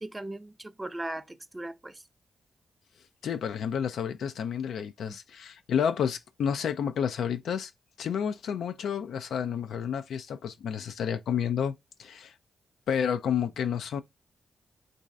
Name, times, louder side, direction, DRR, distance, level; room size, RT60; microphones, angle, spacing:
voice 1, 0.0-2.0 5.1-5.2, right 1 dB, 25° right, 0.5 m, -38 dB
voice 2, 3.2-7.7 8.0-12.3 12.9-14.0, left 8 dB, 75° left, 0.4 m, -30 dB
3.1 x 2.7 x 3.3 m
supercardioid pair, 45°, 0 cm